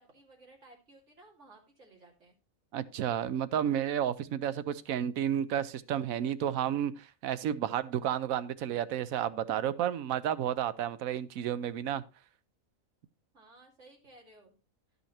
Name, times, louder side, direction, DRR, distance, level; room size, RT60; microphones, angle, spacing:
voice 1, 0.1-2.4 13.3-14.6, right 2 dB, 60° right, 2.9 m, -57 dB
voice 2, 2.7-12.0, right 10 dB, 90° right, 1.1 m, -31 dB
12.0 x 5.6 x 4.2 m
omnidirectional pair, 1.4 m